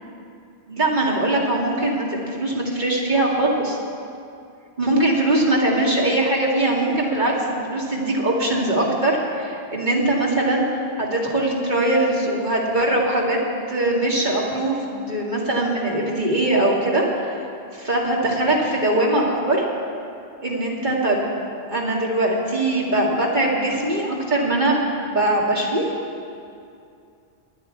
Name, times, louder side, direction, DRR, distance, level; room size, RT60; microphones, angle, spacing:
voice 1, 0.7-3.8 4.8-10.6 11.0-13.4 13.7-17.4 17.8-19.7 20.4-21.2 21.7-25.9, right 1 dB, 45° right, -3 dB, 2.3 m, -21 dB
22.5 x 9.5 x 4.6 m, 2.5 s
omnidirectional pair, 1.1 m